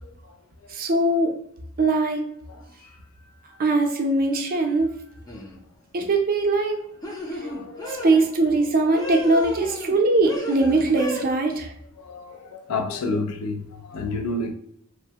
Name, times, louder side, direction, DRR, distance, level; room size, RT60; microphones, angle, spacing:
voice 1, 0.7-1.3 1.8-2.2 3.6-4.9 5.9-6.8 7.9-11.7, right 2 dB, 40° right, 0.5 m, -21 dB
sound 1, 5.3-5.6 7.0-8.2 8.9-10.0 10.2-11.2, equal, 15° left, 0.5 m, -33 dB
voice 2, 7.4-8.1 12.0-14.5, left 3 dB, 80° left, 0.5 m, -30 dB
3.0 x 2.0 x 2.8 m
head